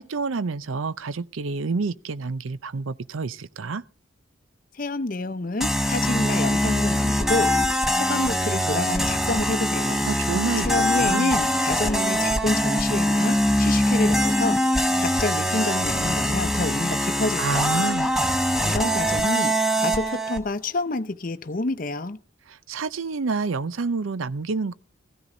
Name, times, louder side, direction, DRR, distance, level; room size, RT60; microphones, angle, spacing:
voice 1, 0.0-3.8 10.0-11.3 17.4-18.1 22.5-24.7, right 4 dB, 90° right, 0.6 m, -28 dB
voice 2, 4.7-10.1 10.6-17.9 18.6-22.2, left 2 dB, 45° left, 0.7 m, -28 dB
sound 1, 5.6-20.4, equal, ahead, 0.9 m, -23 dB
15.0 x 13.0 x 3.8 m
head